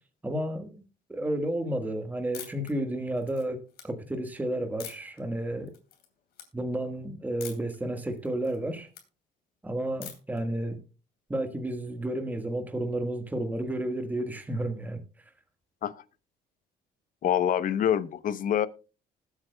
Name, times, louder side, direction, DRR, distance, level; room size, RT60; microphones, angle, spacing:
voice 1, 0.2-0.7 1.1-5.7 6.5-8.9 9.6-10.8 11.3-15.0, right 1 dB, 10° right, 1.4 m, -31 dB
sound 1, 2.3-2.7 3.2-3.8 4.8-5.2 5.7-6.1 6.3-6.5 7.4-7.8 8.1-9.0 10.0-10.4, left 9 dB, 70° left, 2.9 m, -44 dB
voice 2, 17.2-18.7, left 9 dB, 55° left, 0.8 m, -26 dB
20.0 x 8.3 x 2.2 m
cardioid pair, 110°, 17 cm